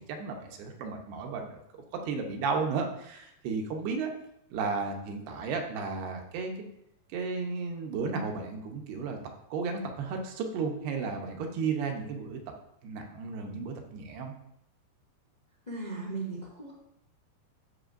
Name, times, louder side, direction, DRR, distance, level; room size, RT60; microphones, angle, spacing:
voice 1, 0.0-1.6 1.9-4.1 4.5-6.5 7.1-9.2 9.5-12.4 12.8-14.3, right 4 dB, 85° right, 3 dB, 3.0 m, -33 dB
voice 2, 15.6-16.7, right 3 dB, 15° left, -6 dB, 1.3 m, -37 dB
13.0 x 5.4 x 2.6 m, 0.79 s
omnidirectional pair, 4.5 m